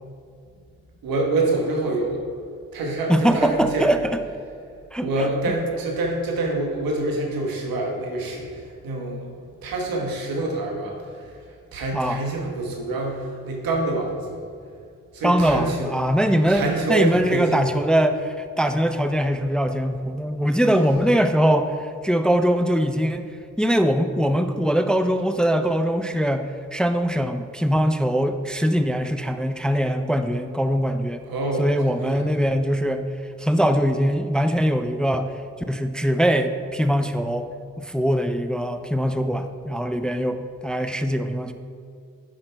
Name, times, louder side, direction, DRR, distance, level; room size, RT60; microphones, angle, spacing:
voice 1, 1.0-2.2 2.7-3.9 5.0-11.3 11.7-14.4 15.1-15.9 16.5-17.6 31.3-32.3, right 2 dB, 85° right, 0 dB, 1.3 m, -26 dB
voice 2, 3.1-4.2 4.9-5.1 11.9-12.2 15.2-16.6 16.9-23.2 23.6-31.2 31.6-33.0 33.4-35.3 35.7-37.5 37.8-40.4 40.6-41.5, equal, ahead, 8 dB, 0.5 m, -22 dB
10.0 x 5.8 x 3.4 m, 2.3 s
supercardioid pair, 40°, 34 cm